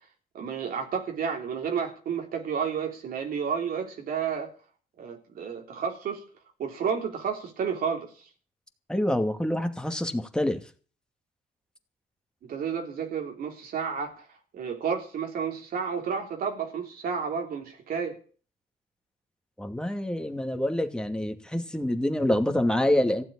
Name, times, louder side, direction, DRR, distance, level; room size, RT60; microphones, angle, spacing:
voice 1, 0.3-4.5 5.0-6.2 6.6-8.3 12.4-14.3 14.5-18.2, right 6 dB, 70° right, 3.2 m, -31 dB
voice 2, 8.9-10.6 19.6-23.2, left 1 dB, 5° left, 2.5 m, -26 dB
15.5 x 7.8 x 9.9 m
cardioid pair, 90°, 16 cm